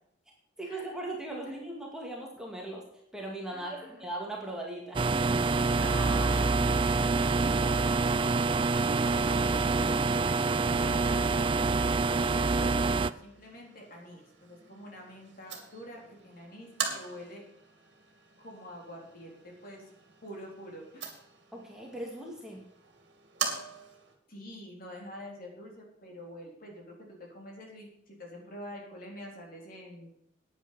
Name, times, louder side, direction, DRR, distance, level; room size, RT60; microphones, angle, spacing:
voice 1, 0.6-2.8 3.1-5.5 21.5-22.6, right 1 dB, 5° right, -1 dB, 2.1 m, -39 dB
voice 2, 3.5-3.9 5.8-8.0 10.6-17.4 18.4-19.8 20.2-21.1 24.3-30.1, left 1 dB, 50° left, 0 dB, 3.9 m, -46 dB
sound 1, 4.9-13.1, right 3 dB, 25° right, 0.4 m, -26 dB
sound 2, 11.1-24.1, right 6 dB, 60° right, 2.6 m, -43 dB
9.8 x 9.6 x 6.8 m, 0.74 s
head